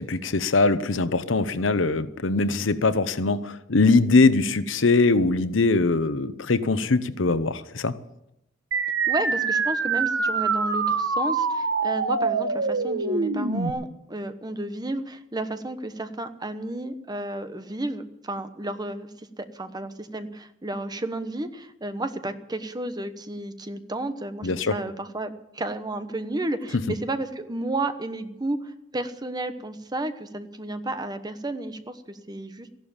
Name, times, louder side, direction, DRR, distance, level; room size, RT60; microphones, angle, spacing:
voice 1, 0.0-7.9 24.4-24.8, left 3 dB, 80° left, 14 dB, 0.9 m, -22 dB
sound 1, 8.7-13.7, right 4 dB, 80° right, 1.4 m, -25 dB
voice 2, 9.1-19.1 19.4-32.7, right 2 dB, 20° right, 9 dB, 1.1 m, -32 dB
15.0 x 11.5 x 7.2 m, 0.86 s
head